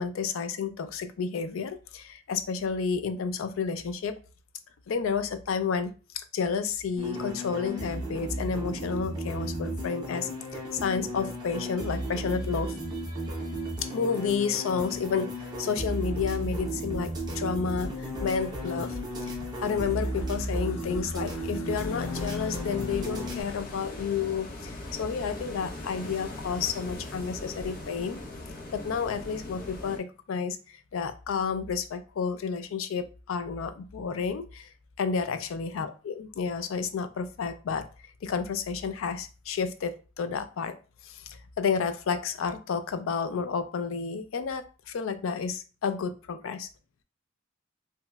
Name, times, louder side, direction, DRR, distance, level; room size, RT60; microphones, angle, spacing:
voice 1, 0.0-4.2 4.9-12.7 13.8-28.2 28.7-34.7 35.0-37.9 38.2-40.8 41.0-46.7, left 5 dB, 80° left, 11 dB, 0.4 m, -31 dB
sound 1, 7.0-23.4, equal, 20° right, 0.8 m, -34 dB
sound 2, 21.7-30.0, left 2 dB, 45° left, 0.7 m, -40 dB
3.0 x 2.8 x 2.3 m, 0.34 s
head